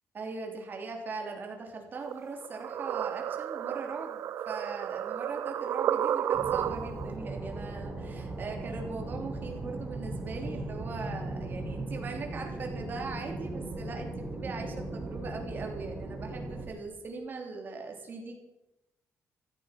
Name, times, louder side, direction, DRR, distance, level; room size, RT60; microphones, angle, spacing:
voice 1, 0.1-18.4, right 4 dB, 35° right, 2 dB, 3.2 m, -40 dB
sound 1, 2.0-7.1, right 10 dB, 60° right, 0.6 m, -32 dB
sound 2, 6.3-16.7, right 2 dB, 10° right, 5.9 m, -38 dB
15.0 x 14.5 x 6.0 m, 1.0 s
cardioid pair, 175°, 5 cm